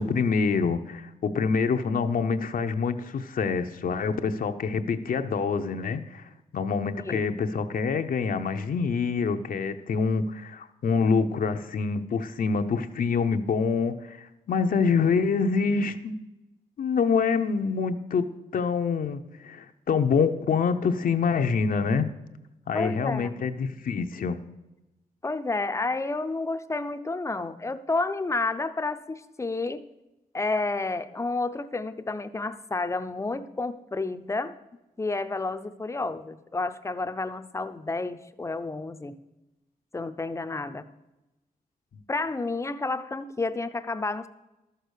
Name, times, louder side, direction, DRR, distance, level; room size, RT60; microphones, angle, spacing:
voice 1, 0.0-6.2 6.5-16.1 16.8-18.2 18.5-22.1 22.7-24.4 41.9-42.0, left 5 dB, 70° left, 6 dB, 0.7 m, -26 dB
voice 2, 22.7-23.4 25.2-29.8 30.3-34.5 35.0-39.1 39.9-40.8 42.1-44.3, left 3 dB, 20° left, 10 dB, 0.6 m, -30 dB
13.0 x 6.7 x 6.4 m, 0.98 s
wide cardioid pair, 130°, 15 cm